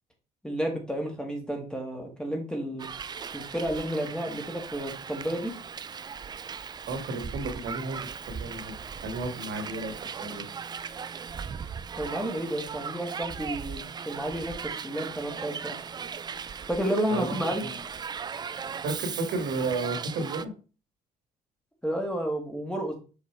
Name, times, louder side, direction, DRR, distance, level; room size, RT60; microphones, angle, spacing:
voice 1, 0.4-2.9 3.3-5.5 12.0-15.8 16.7-17.6 21.8-22.9, right 1 dB, 5° left, 2 dB, 1.9 m, -31 dB
Hiss, 2.8-20.5, right 6 dB, 25° right, 0.3 m, -38 dB
voice 2, 6.9-8.7 9.0-10.5 17.1-17.8 18.8-20.5, right 3 dB, 70° right, 3 dB, 2.2 m, -33 dB
6.7 x 4.8 x 3.4 m, 0.34 s
cardioid pair, 110°, 17 cm